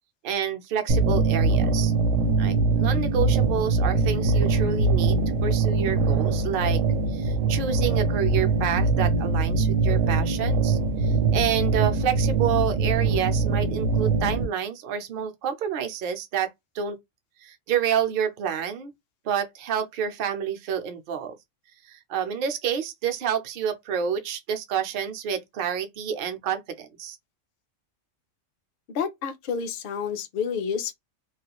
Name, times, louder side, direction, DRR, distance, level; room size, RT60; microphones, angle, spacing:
voice 1, 0.2-1.9 2.4-6.8 7.1-17.0 17.4-18.9 19.2-21.3 21.9-27.2, right 8 dB, 55° right, 0.6 m, -29 dB
sound 1, 0.9-14.4, right 3 dB, 80° right, 0.9 m, -23 dB
voice 2, 28.9-30.9, left 6 dB, 60° left, 0.6 m, -29 dB
2.4 x 2.3 x 2.8 m
omnidirectional pair, 1.3 m